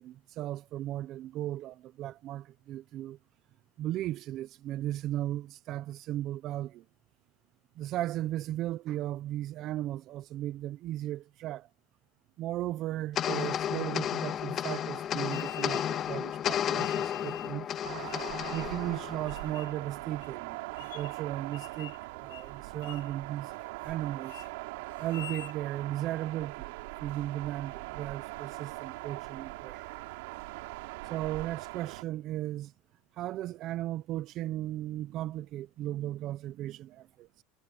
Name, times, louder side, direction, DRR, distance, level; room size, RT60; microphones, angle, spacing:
voice 1, 0.0-3.2 3.8-6.8 7.8-11.7 12.4-17.7 17.9-18.0 18.5-23.5 23.8-24.4 25.0-26.7 27.0-30.0 31.0-32.7 33.1-37.4, right 14 dB, 50° right, 0.7 m, -36 dB
sound 1, 13.2-19.8, left 10 dB, 40° left, 2.0 m, -33 dB
sound 2, 15.3-16.1 16.8-17.6 18.1-18.8 19.3-19.8 20.2-20.3 20.8-21.2 21.5-22.0 22.3-22.5 22.8-23.1 23.5-24.0 24.2-24.5 25.0-25.6, left 11 dB, 90° left, 1.3 m, -47 dB
sound 3, 17.8-32.0, right 22 dB, 80° right, 3.2 m, -41 dB
supercardioid pair, 125°, 0 cm